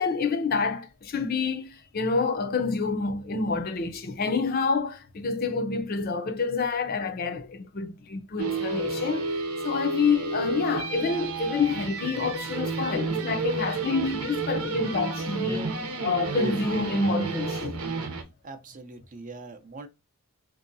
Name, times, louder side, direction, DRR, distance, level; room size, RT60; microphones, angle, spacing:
voice 1, 0.0-15.7 16.0-17.8, left 4 dB, 45° left, 0.5 m, -28 dB
sound 1, 8.4-18.2, right 4 dB, 90° right, 0.8 m, -31 dB
voice 2, 18.4-19.9, right 3 dB, 35° right, 0.5 m, -42 dB
3.7 x 2.7 x 2.6 m
head